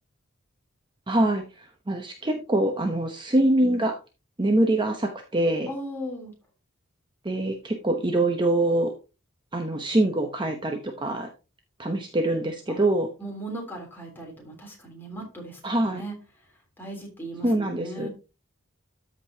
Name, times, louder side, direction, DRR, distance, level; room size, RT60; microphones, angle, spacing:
voice 1, 1.1-4.0 4.4-5.7 7.2-8.9 9.5-11.3 11.8-13.1 15.6-16.0 17.4-18.1, right 1 dB, 25° right, 4 dB, 0.9 m, -24 dB
voice 2, 5.7-6.3 12.7-12.8 13.2-15.6 15.9-16.1 16.8-18.1, right 1 dB, 10° left, -1 dB, 3.3 m, -37 dB
13.5 x 5.3 x 2.8 m, 0.30 s
head